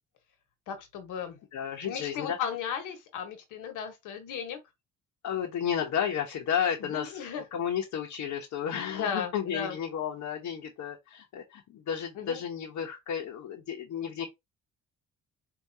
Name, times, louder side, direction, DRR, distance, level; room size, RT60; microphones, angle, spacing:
voice 1, 0.7-1.4 1.8-4.6 6.8-7.4 8.9-9.8 12.2-12.4, left 7 dB, 90° left, 1.3 m, -35 dB
voice 2, 1.5-2.4 5.2-14.3, left 8 dB, 70° left, 1.0 m, -32 dB
4.7 x 2.6 x 2.7 m
cardioid pair, 90°, 30 cm